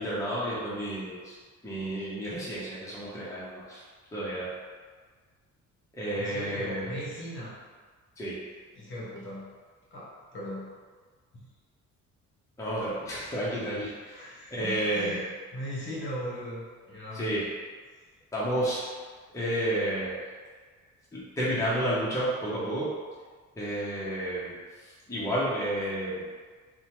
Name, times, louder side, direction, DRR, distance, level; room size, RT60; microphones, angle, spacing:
voice 1, 0.0-1.4 1.6-3.8 4.1-4.5 5.9-7.0 8.2-8.4 12.6-15.2 17.1-17.4 18.3-19.0 19.3-20.1 21.1-22.9 23.6-26.4, right 1 dB, 10° left, -9 dB, 0.8 m, -31 dB
voice 2, 6.2-7.6 8.7-9.6 9.9-10.7 11.3-11.5 14.0-17.4, equal, 40° left, -7 dB, 1.0 m, -38 dB
2.8 x 2.2 x 2.9 m, 1.5 s
cardioid pair, 90°, 30 cm